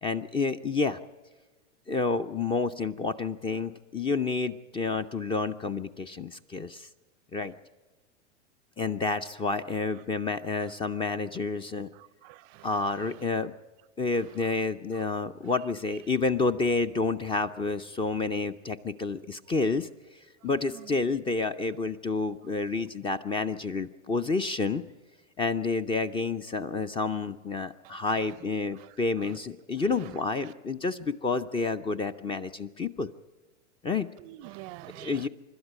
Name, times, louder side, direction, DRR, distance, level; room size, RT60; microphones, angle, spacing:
voice 1, 0.0-1.0 1.9-6.9 7.3-7.5 8.8-11.9 12.6-13.5 14.0-19.9 20.4-24.8 25.4-33.1 33.8-34.1 35.0-35.3, left 3 dB, 15° left, 0.5 m, -29 dB
voice 2, 11.9-13.2 14.9-15.0 20.7-21.0 27.8-27.9 28.8-28.9 29.2-29.3 29.9-30.1 34.2-35.3, right 18 dB, 35° right, 0.6 m, -47 dB
25.5 x 12.5 x 8.8 m
hypercardioid pair, 105°, 36 cm